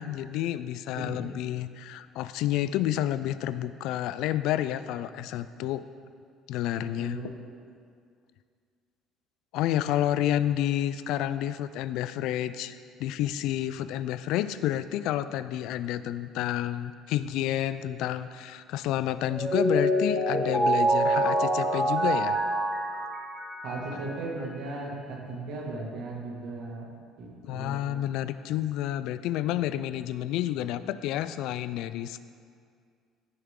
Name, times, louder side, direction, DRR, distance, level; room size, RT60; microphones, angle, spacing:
voice 1, 0.0-5.8 6.5-7.2 9.5-22.4 27.4-32.2, left 12 dB, 75° left, 14 dB, 0.3 m, -30 dB
voice 2, 6.7-7.4 23.6-26.9 27.2-27.8, right 2 dB, 65° right, -2 dB, 2.1 m, -37 dB
Mallet percussion, 19.3-24.2, right 1 dB, ahead, 1.7 m, -26 dB
15.0 x 6.8 x 3.8 m, 2.2 s
cardioid pair, 155°, 0 cm